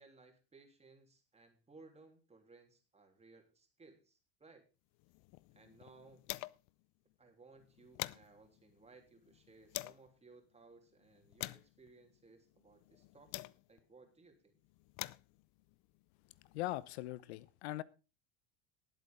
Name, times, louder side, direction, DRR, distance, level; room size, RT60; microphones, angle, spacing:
voice 1, 0.0-4.7 5.5-6.3 7.2-14.6, right 3 dB, 20° right, 4 dB, 3.4 m, -61 dB
sound 1, 5.0-6.8 7.1-7.2 7.5-10.1 10.7-13.9 14.6-16.8, left 21 dB, 55° left, 0.6 m, -48 dB
voice 2, 16.5-17.8, left 16 dB, 75° left, 20 dB, 1.0 m, -40 dB
19.0 x 8.3 x 3.7 m, 0.31 s
hypercardioid pair, 95°, 33 cm